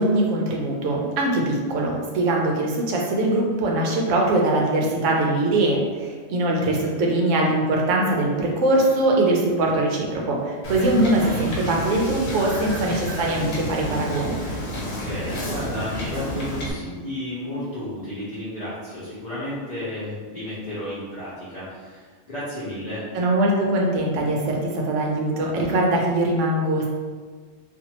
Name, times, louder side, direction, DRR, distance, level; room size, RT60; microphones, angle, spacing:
voice 1, 0.0-14.4 23.1-26.9, right 1 dB, 75° right, -1 dB, 0.9 m, -22 dB
voice 2, 6.6-6.9 14.6-23.0, left 1 dB, 40° left, -11 dB, 0.7 m, -33 dB
Wind / Boat Water vehicle, 10.6-16.7, equal, 85° left, 1.0 m, -30 dB
2.6 x 2.4 x 2.9 m, 1.5 s
omnidirectional pair, 1.3 m